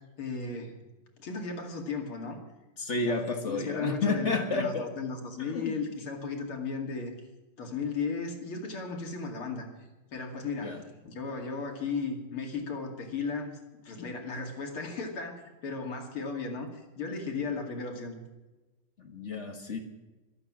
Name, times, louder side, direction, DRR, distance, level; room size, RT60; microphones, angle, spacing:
voice 1, 0.2-0.8 1.2-2.4 3.0-3.2 3.4-7.1 7.6-9.7 10.1-13.6 13.8-18.2, left 4 dB, 80° left, 2 dB, 3.2 m, -35 dB
voice 2, 2.8-4.9 5.5-5.8 10.6-10.8 19.0-19.8, left 3 dB, 35° left, 5 dB, 1.7 m, -31 dB
24.5 x 8.7 x 6.1 m, 1.1 s
omnidirectional pair, 2.3 m